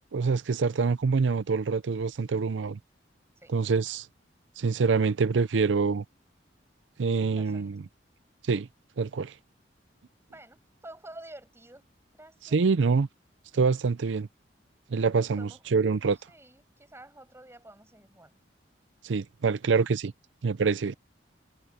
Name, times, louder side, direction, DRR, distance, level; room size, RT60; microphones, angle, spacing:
voice 1, 0.1-2.8 3.5-4.1 4.6-6.0 7.0-7.8 8.4-8.7 9.0-9.3 12.5-13.1 13.5-14.3 14.9-16.2 19.0-20.1 20.4-20.9, right 4 dB, 90° right, 0.5 m, -25 dB
voice 2, 7.4-7.7 10.3-11.8 12.2-12.6 15.4-15.6 16.3-18.4, right 1 dB, 15° right, 6.8 m, -49 dB
head